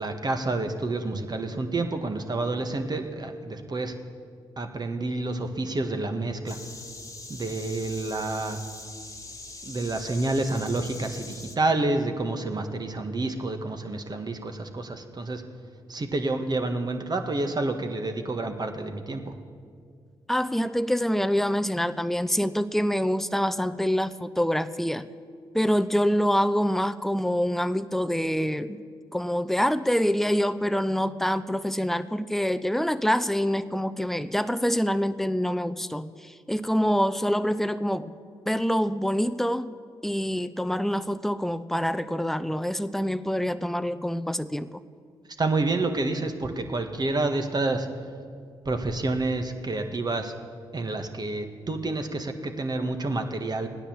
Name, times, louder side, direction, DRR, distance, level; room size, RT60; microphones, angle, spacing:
voice 1, 0.0-3.9 4.6-6.6 7.3-8.6 9.6-15.4 15.9-19.3 45.4-47.9 48.6-50.3 50.7-53.7, right 2 dB, 40° right, 6 dB, 1.6 m, -29 dB
sound 1, 6.5-11.6, left 3 dB, 30° left, 1.4 m, -42 dB
voice 2, 20.3-25.0 25.5-28.8 29.1-38.1 38.5-39.7 40.0-44.7, equal, 5° left, 13 dB, 0.7 m, -26 dB
15.5 x 9.9 x 7.4 m, 2.1 s
hypercardioid pair, 40°, 11 cm